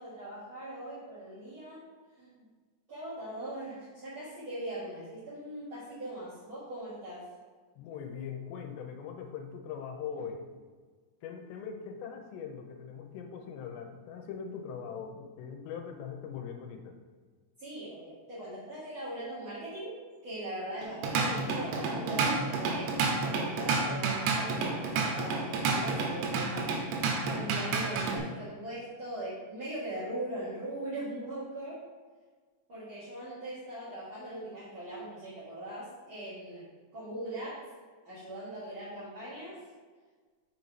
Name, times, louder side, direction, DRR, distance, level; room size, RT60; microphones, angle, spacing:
voice 1, 0.0-1.9 2.2-2.3 2.9-7.2 17.6-26.7 27.2-31.8 32.7-36.6 36.9-37.6 38.0-39.6, right 1 dB, 60° right, -12 dB, 1.3 m, -40 dB
voice 2, 7.8-10.4 11.2-17.0, left 7 dB, 90° left, 4 dB, 2.9 m, -41 dB
Drum kit / Drum, 20.8-28.2, right 4 dB, 85° right, 3.0 m, -30 dB
6.6 x 4.1 x 4.4 m, 1.5 s
omnidirectional pair, 5.0 m